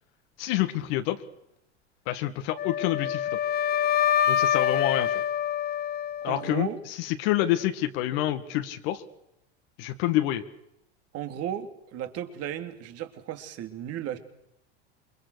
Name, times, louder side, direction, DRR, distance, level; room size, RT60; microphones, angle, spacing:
voice 1, 0.4-1.2 2.1-3.4 4.3-5.1 6.2-9.0 9.8-10.4, left 14 dB, 65° left, 8 dB, 2.0 m, -27 dB
Wind instrument woodwind instrument, 2.6-6.7, left 10 dB, 30° left, 0.8 m, -26 dB
voice 2, 6.2-6.8 11.1-14.2, right 10 dB, 50° right, 8 dB, 2.9 m, -35 dB
28.0 x 22.0 x 6.4 m, 0.81 s
hypercardioid pair, 95°, 32 cm